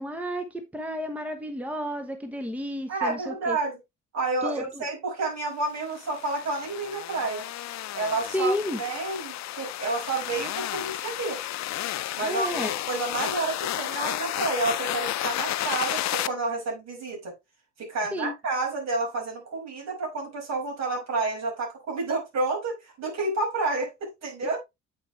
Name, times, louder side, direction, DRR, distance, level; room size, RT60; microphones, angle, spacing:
voice 1, 0.0-3.6 4.4-4.8 8.3-8.8 12.2-12.7 18.1-18.3, equal, 5° right, 1.0 m, -31 dB
voice 2, 2.9-3.8 4.1-7.4 7.9-11.4 12.1-17.3 17.8-24.6, right 3 dB, 60° right, 5.4 m, -30 dB
sound 1, 5.8-16.3, left 14 dB, 65° left, 0.6 m, -32 dB
8.3 x 5.3 x 3.2 m
cardioid pair, 90°, 30 cm